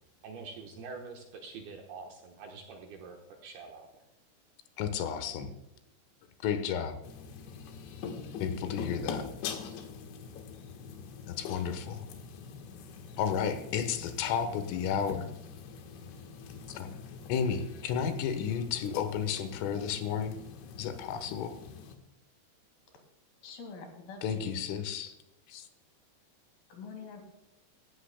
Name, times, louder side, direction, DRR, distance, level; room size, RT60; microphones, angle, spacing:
voice 1, 0.2-4.0, right 4 dB, 70° right, 1 dB, 2.6 m, -46 dB
voice 2, 4.8-5.5 6.4-6.9 8.4-9.2 11.3-12.1 13.2-15.3 16.8-20.4 20.8-21.6 24.2-25.1 25.5-25.7, left 7 dB, 85° left, 9 dB, 3.8 m, -32 dB
sound 1, 7.0-22.0, left 5 dB, 70° left, 3.4 m, -43 dB
voice 3, 23.4-24.5 26.7-27.2, left 4 dB, 55° left, 4 dB, 3.4 m, -45 dB
17.0 x 13.5 x 2.2 m, 0.93 s
omnidirectional pair, 5.6 m